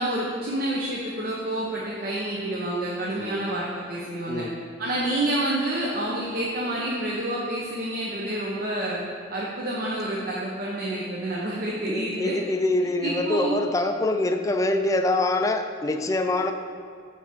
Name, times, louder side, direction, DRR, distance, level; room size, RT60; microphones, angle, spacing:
voice 1, 0.0-4.4 4.8-9.0 9.3-12.3 13.0-13.6, right 1 dB, 50° right, -4 dB, 0.7 m, -28 dB
voice 2, 11.9-16.5, left 2 dB, 15° left, 6 dB, 0.3 m, -25 dB
7.5 x 3.4 x 5.9 m, 2.1 s
head